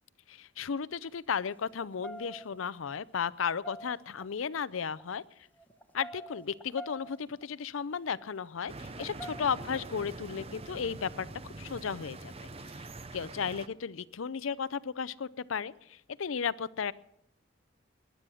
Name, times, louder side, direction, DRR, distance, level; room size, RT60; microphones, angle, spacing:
voice 1, 0.3-5.2 5.9-11.3 11.6-12.3 13.1-16.9, left 6 dB, 85° left, 18 dB, 0.5 m, -34 dB
sound 1, 1.0-1.1 1.7-2.7 3.3-4.2 4.9-5.1 5.6-7.5 8.1-8.3 8.9-9.5, right 1 dB, 10° left, 1.2 m, -46 dB
sound 2, 8.7-13.7, right 2 dB, 30° right, 0.7 m, -44 dB
20.0 x 11.5 x 6.3 m, 0.78 s
head